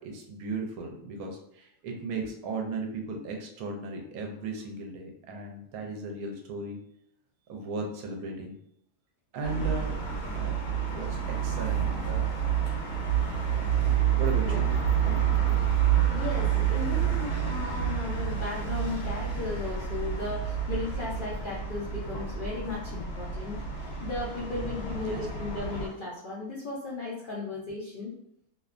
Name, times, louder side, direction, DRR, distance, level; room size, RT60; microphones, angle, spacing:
voice 1, 0.0-6.8 7.5-8.6 9.3-9.9 10.3-10.5 10.9-12.4 13.4-13.7 14.1-14.7 15.0-15.7 24.4-24.7 25.1-25.2, right 3 dB, 80° right, 2 dB, 1.0 m, -36 dB
sound 1, 9.4-25.9, right 9 dB, 70° left, 1.0 m, -28 dB
voice 2, 16.1-28.1, left 3 dB, 90° left, -5 dB, 0.4 m, -36 dB
2.6 x 2.1 x 2.4 m, 0.75 s
omnidirectional pair, 1.5 m